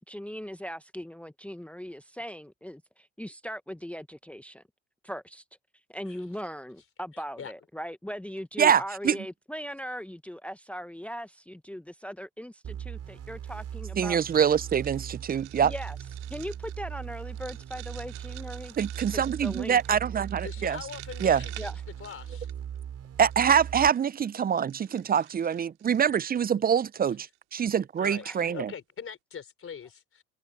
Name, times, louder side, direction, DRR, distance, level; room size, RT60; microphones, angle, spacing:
voice 1, 0.1-4.6 5.0-5.4 5.9-14.2 15.6-16.0 16.3-18.8 19.1-19.8 21.6-21.7 28.2-28.4, equal, 5° left, 1.1 m, -39 dB
voice 2, 8.6-9.2 14.0-15.7 18.8-20.8 21.2-21.4 23.2-28.7, right 8 dB, 25° right, 0.5 m, -25 dB
sound 1, 12.6-23.9, right 9 dB, 45° right, 6.3 m, -39 dB
sound 2, 14.2-22.8 23.3-26.5 27.1-27.4 27.6-27.7 28.0-28.4, right 24 dB, 85° right, 2.3 m, -50 dB
voice 3, 20.4-21.7 22.0-22.5 28.0-30.2, left 7 dB, 40° left, 4.2 m, -42 dB
hypercardioid pair, 70°, 34 cm